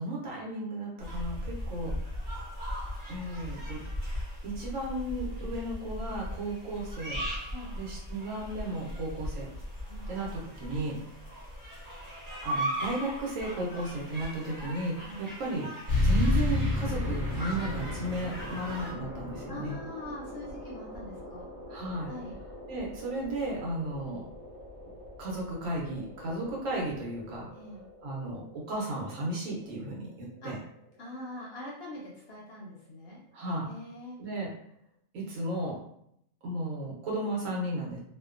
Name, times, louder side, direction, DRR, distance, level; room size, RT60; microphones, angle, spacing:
voice 1, 0.0-1.9 3.1-3.8 4.4-7.3 7.7-9.5 10.1-11.0 12.4-15.7 16.0-19.7 21.7-22.1 22.7-24.3 25.2-27.5 28.0-30.6 33.3-33.7 34.2-34.5 35.1-35.8 36.4-38.0, right 1 dB, 75° right, -3 dB, 1.1 m, -34 dB
sound 1, 1.0-18.9, equal, 20° right, 0.7 m, -38 dB
sound 2, 15.9-31.0, left 2 dB, 40° right, 1.0 m, -34 dB
voice 2, 19.5-21.5 22.1-22.4 27.5-27.8 30.4-30.5 31.0-33.2 33.7-34.2, left 1 dB, 60° left, -3 dB, 0.7 m, -43 dB
2.6 x 2.1 x 2.4 m, 0.71 s
omnidirectional pair, 1.4 m